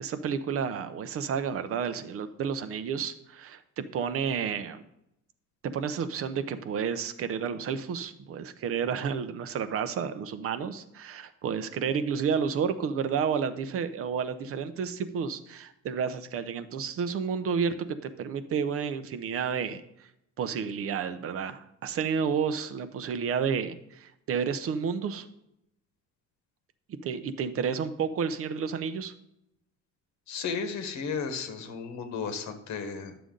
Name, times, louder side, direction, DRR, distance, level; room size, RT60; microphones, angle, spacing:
voice 1, 0.0-4.8 5.6-17.9 18.2-19.8 20.4-25.3 27.0-29.1, right 6 dB, 50° right, 11 dB, 0.7 m, -31 dB
voice 2, 30.3-33.2, left 5 dB, 70° left, 8 dB, 1.3 m, -34 dB
11.0 x 6.9 x 3.8 m, 0.81 s
cardioid pair, 150°, 29 cm